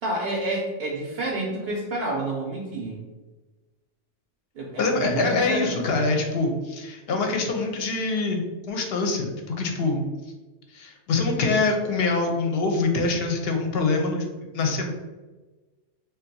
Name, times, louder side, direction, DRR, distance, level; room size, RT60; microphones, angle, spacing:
voice 1, 0.0-3.0 4.6-6.0, right 2 dB, 65° right, -2 dB, 0.7 m, -29 dB
voice 2, 4.8-10.0 10.7-14.2 14.5-14.9, left 3 dB, 65° left, 3 dB, 0.7 m, -24 dB
2.6 x 2.2 x 3.9 m, 1.2 s
omnidirectional pair, 1.2 m